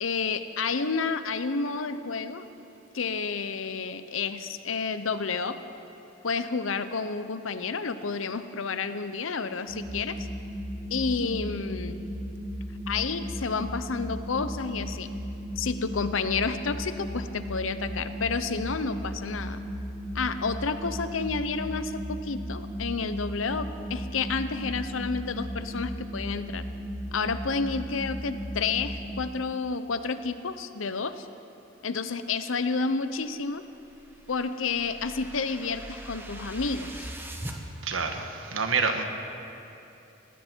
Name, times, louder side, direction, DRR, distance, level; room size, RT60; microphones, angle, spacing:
voice 1, 0.0-2.5 2.9-5.6 6.2-10.2 10.9-12.0 12.9-15.1 15.6-19.6 20.1-26.6 27.1-31.3 31.8-33.6 34.3-37.1, left 4 dB, 80° left, 11 dB, 0.8 m, -30 dB
sound 1, 9.7-29.2, equal, 30° left, 3.3 m, -36 dB
sound 2, 33.5-37.6, right 1 dB, 10° right, 1.1 m, -41 dB
voice 2, 37.8-39.0, right 5 dB, 85° right, 5 dB, 1.4 m, -27 dB
20.0 x 15.5 x 4.5 m, 2.8 s
head